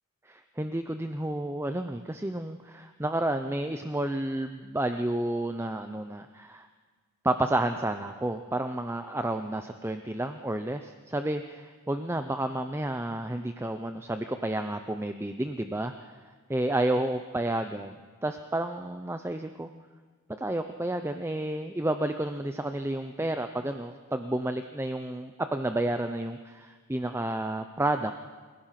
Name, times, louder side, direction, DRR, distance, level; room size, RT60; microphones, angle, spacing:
voice 1, 0.2-6.7 7.2-16.1 16.5-18.0 18.2-19.7 20.4-28.2, right 1 dB, 10° right, 8 dB, 0.6 m, -31 dB
29.0 x 16.5 x 5.9 m, 1.5 s
head